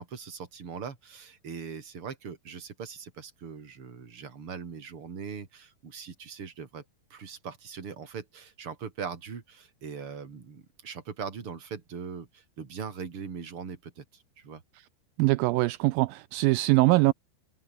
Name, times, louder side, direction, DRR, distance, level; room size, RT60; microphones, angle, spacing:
voice 1, 0.0-6.8 7.1-14.6, right 6 dB, 35° right, 3.5 m, -40 dB
voice 2, 15.2-17.1, right 20 dB, 80° right, 2.2 m, -22 dB
open air
omnidirectional pair, 4.5 m